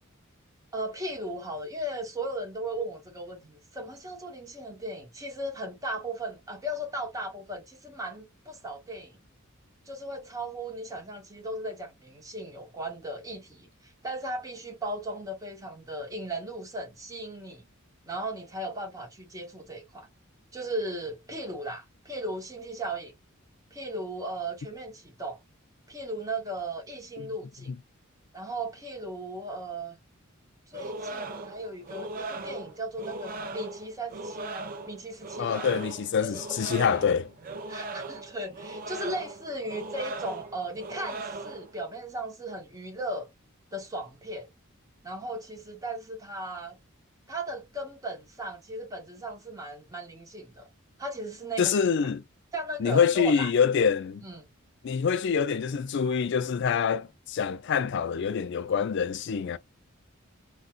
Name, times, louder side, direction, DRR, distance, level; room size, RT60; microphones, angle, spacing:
voice 1, 0.7-9.2 9.9-17.6 18.1-20.1 20.5-23.1 23.7-25.4 25.9-27.7 28.3-30.0 30.7-35.7 36.2-36.8 37.7-43.3 43.7-44.5 45.0-46.8 47.3-50.7 51.0-51.8 52.5-53.5 54.2-54.5, right 1 dB, 15° right, 1.1 m, -36 dB
sound 1, 30.7-41.8, right 2 dB, 45° right, 0.5 m, -38 dB
voice 2, 35.4-37.3 51.6-52.2 52.8-54.2 54.8-59.6, left 6 dB, 60° left, 0.4 m, -26 dB
3.8 x 2.3 x 2.4 m
head